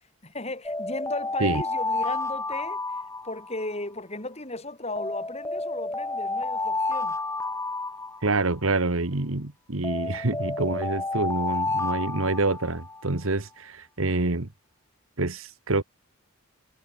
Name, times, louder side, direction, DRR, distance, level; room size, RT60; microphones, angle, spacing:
voice 1, 0.2-3.0 3.2-7.2, left 2 dB, 30° left, 5.1 m, -35 dB
sound 1, 0.6-3.8 5.0-8.7 9.8-13.1, left 2 dB, 15° left, 5.4 m, -30 dB
voice 2, 8.2-14.5 15.2-15.8, right 2 dB, 80° right, 1.7 m, -27 dB
head